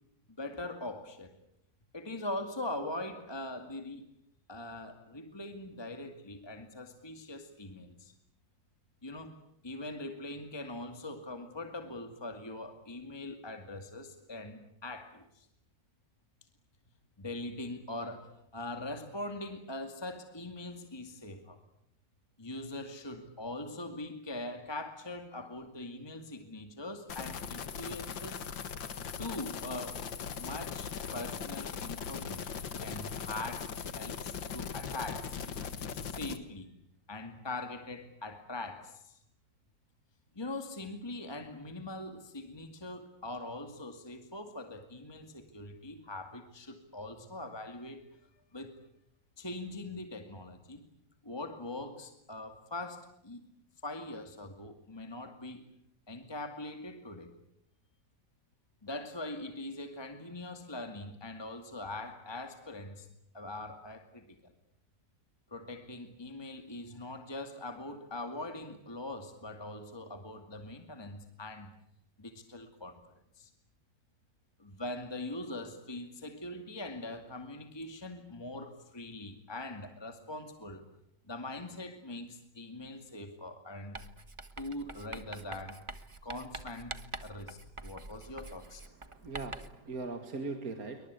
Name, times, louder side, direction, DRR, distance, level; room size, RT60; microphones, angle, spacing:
voice 1, 0.4-1.3 1.9-4.1 4.5-8.1 9.0-9.4 9.6-15.5 17.2-21.6 22.4-28.5 29.2-30.1 30.4-35.3 35.9-36.8 37.1-39.2 40.3-48.1 48.5-48.8 49.4-50.9 51.2-53.5 53.8-55.7 56.1-57.3 58.8-63.1 63.3-64.5 65.5-71.7 72.2-73.0 73.3-73.5 74.6-80.8 81.3-84.0 84.6-85.8 86.2-88.8, left 2 dB, 15° left, 6 dB, 2.2 m, -42 dB
sound 1, 27.1-36.4, left 6 dB, 85° left, 2.3 m, -39 dB
Writing, 83.9-89.8, right 2 dB, 20° right, 1.2 m, -46 dB
voice 2, 89.1-91.1, right 3 dB, 50° right, 6 dB, 2.5 m, -40 dB
27.0 x 24.5 x 8.4 m, 0.78 s
omnidirectional pair, 2.0 m